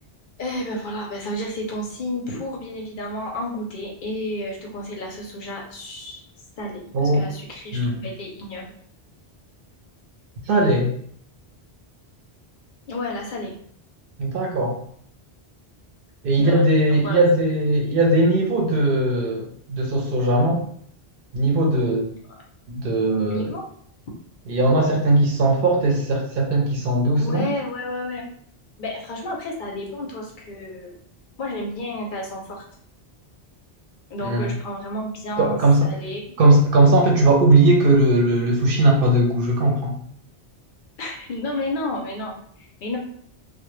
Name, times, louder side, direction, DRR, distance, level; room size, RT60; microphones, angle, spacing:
voice 1, 0.4-6.3 6.6-8.7 12.9-13.5 16.4-17.2 22.3-22.4 23.3-23.7 27.2-28.3 28.8-31.0 31.4-32.6 34.1-36.4 41.0-43.0, left 1 dB, 60° left, -1 dB, 0.6 m, -31 dB
voice 2, 7.7-8.1 10.5-10.9 14.2-14.8 16.2-20.6 21.3-22.1 22.7-23.5 24.5-27.5 34.2-34.5 35.4-35.9 36.4-39.9, right 2 dB, 65° right, 1 dB, 0.7 m, -19 dB
2.1 x 2.1 x 3.0 m, 0.62 s
omnidirectional pair, 1.0 m